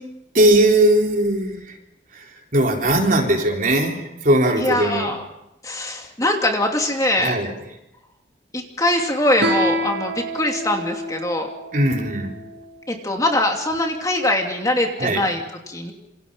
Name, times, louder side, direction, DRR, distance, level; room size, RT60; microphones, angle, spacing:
voice 1, 0.3-1.7 2.1-2.3 2.5-5.1 7.2-7.5 11.7-12.3 15.0-15.2, right 1 dB, 45° right, 1 dB, 4.1 m, -19 dB
voice 2, 4.6-5.2 5.6-7.4 8.5-11.5 12.9-15.4 15.7-15.9, left 1 dB, 20° left, 2 dB, 2.7 m, -22 dB
Guitar, 9.4-12.6, equal, 65° right, 5.8 m, -27 dB
27.5 x 27.0 x 5.6 m, 0.88 s
head